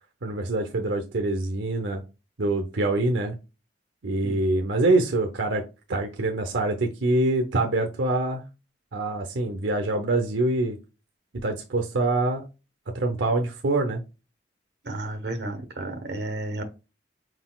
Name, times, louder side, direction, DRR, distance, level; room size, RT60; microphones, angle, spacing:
voice 1, 0.2-2.0 2.4-3.3 4.0-8.4 8.9-10.8 11.4-12.4 12.9-14.0, right 2 dB, 90° right, 4 dB, 0.6 m, -25 dB
voice 2, 14.8-16.6, right 2 dB, 65° right, 7 dB, 1.0 m, -32 dB
4.7 x 3.9 x 2.2 m, 0.29 s
head